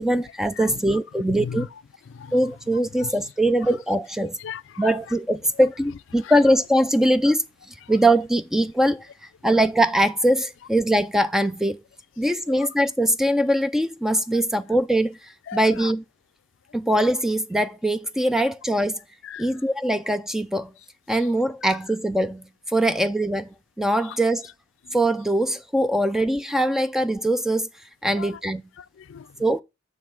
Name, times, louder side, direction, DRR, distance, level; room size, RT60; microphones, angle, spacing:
voice 1, 0.0-1.6 2.3-4.4 4.8-7.4 7.9-9.1 9.4-11.8 12.2-15.2 15.5-16.0 16.7-19.0 19.4-20.7 21.1-24.4 24.9-27.7 28.0-28.6 29.4-29.6, right 1 dB, ahead, 0.4 m, -22 dB
voice 2, 0.6-1.0 1.3-1.7 2.1-2.4 3.0-3.3 4.2-5.1 6.2-6.3 7.8-7.9 12.5-12.7 15.5-15.9 19.2-19.6 21.1-21.3 21.7-21.8 24.0-24.2 24.8-25.0 28.1-28.4 28.8-29.4, left 7 dB, 65° left, 0.4 m, -38 dB
6.9 x 3.3 x 6.0 m
head